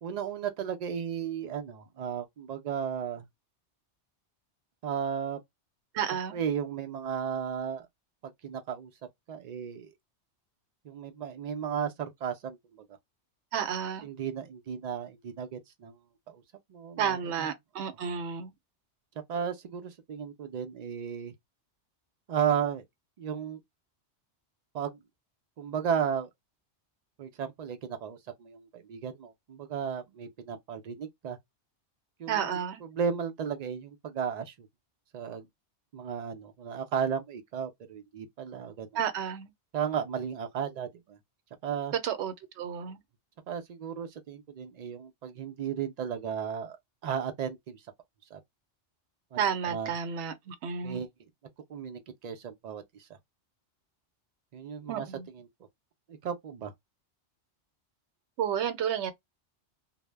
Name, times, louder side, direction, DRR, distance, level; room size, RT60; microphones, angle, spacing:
voice 1, 0.0-3.3 4.8-5.4 6.3-7.9 8.2-8.9 9.3-9.9 10.8-12.8 14.0-16.0 16.3-16.4 16.7-17.5 19.3-21.3 22.3-22.8 23.2-23.6 24.7-25.0 25.6-26.3 27.2-31.4 32.2-32.6 32.9-34.7 35.1-35.5 35.9-38.9 39.7-41.2 41.6-41.9 43.5-46.8 47.0-47.8 48.3-48.4 49.3-49.9 50.8-51.1 51.7-53.1 54.5-55.1 56.1-56.7, right 7 dB, 60° right, 0.4 m, -34 dB
voice 2, 5.9-6.4 13.5-14.1 17.0-18.5 32.3-32.8 38.9-39.5 42.0-43.0 49.4-51.0 54.9-55.3 58.4-59.1, right 8 dB, 75° right, 0.9 m, -31 dB
2.1 x 2.0 x 3.2 m
omnidirectional pair, 1.2 m